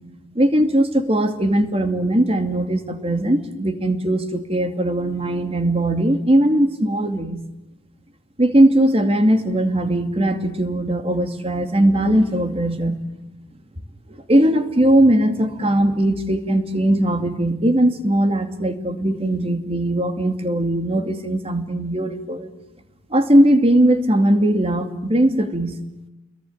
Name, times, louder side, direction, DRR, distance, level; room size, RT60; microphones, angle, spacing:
voice 1, 0.3-7.4 8.4-13.0 14.3-22.5 23.1-25.8, right 1 dB, 30° right, 8 dB, 2.4 m, -19 dB
29.5 x 22.5 x 9.0 m, 0.92 s
head